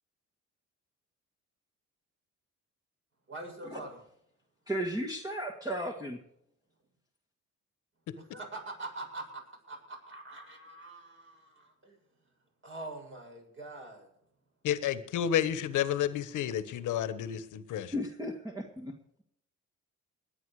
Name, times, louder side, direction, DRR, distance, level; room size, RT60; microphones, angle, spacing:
voice 1, 3.3-4.0 8.2-9.4 9.7-12.0 12.6-14.1, right 2 dB, 40° right, 1 dB, 7.2 m, -44 dB
voice 2, 4.7-6.2 17.9-18.9, equal, 10° right, 0 dB, 1.8 m, -35 dB
voice 3, 14.6-17.9, left 10 dB, 80° left, 13 dB, 1.3 m, -30 dB
20.5 x 9.1 x 4.9 m, 0.72 s
cardioid pair, 90°, 30 cm